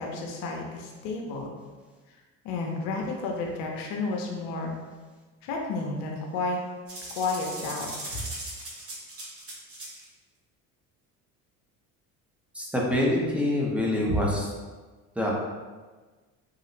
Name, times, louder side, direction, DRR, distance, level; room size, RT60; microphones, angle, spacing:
voice 1, 0.0-1.6 2.4-4.7 5.4-6.6 7.1-8.2, left 3 dB, 75° left, 0 dB, 0.8 m, -31 dB
sound 1, 6.9-10.0, right 1 dB, 35° right, 1.2 m, -39 dB
voice 2, 12.5-14.5 15.2-15.3, left 1 dB, 5° right, -4 dB, 0.9 m, -25 dB
3.6 x 2.3 x 3.1 m, 1.3 s
supercardioid pair, 70°, 39 cm